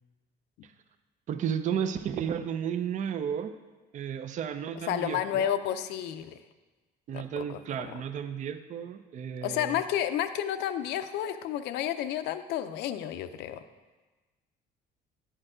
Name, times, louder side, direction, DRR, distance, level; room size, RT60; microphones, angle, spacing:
voice 1, 1.3-3.6 3.9-5.4 7.1-9.8, right 8 dB, 45° right, 10 dB, 0.5 m, -33 dB
voice 2, 4.9-6.4 7.1-7.9 9.4-13.6, left 10 dB, 85° left, 10 dB, 0.5 m, -31 dB
9.8 x 4.5 x 4.9 m, 1.3 s
cardioid pair, 110°, 17 cm